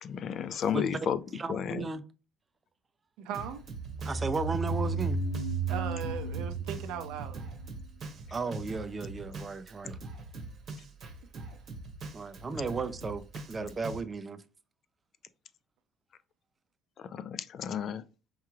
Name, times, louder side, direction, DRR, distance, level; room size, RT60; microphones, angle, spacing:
voice 1, 0.0-1.2 1.5-1.9 17.0-18.0, left 8 dB, 50° left, 0.3 m, -32 dB
voice 2, 0.7-2.0 4.0-5.2 8.3-10.0 12.1-14.4, right 4 dB, 25° right, 0.4 m, -35 dB
voice 3, 3.2-3.6 5.7-7.5, right 8 dB, 90° right, 0.5 m, -38 dB
Drum kit, 3.3-14.0, right 3 dB, 45° right, 0.9 m, -43 dB
sound 1, 3.7-8.3, right 3 dB, 80° left, 0.7 m, -34 dB
4.7 x 3.0 x 2.3 m
cardioid pair, 130°, 0 cm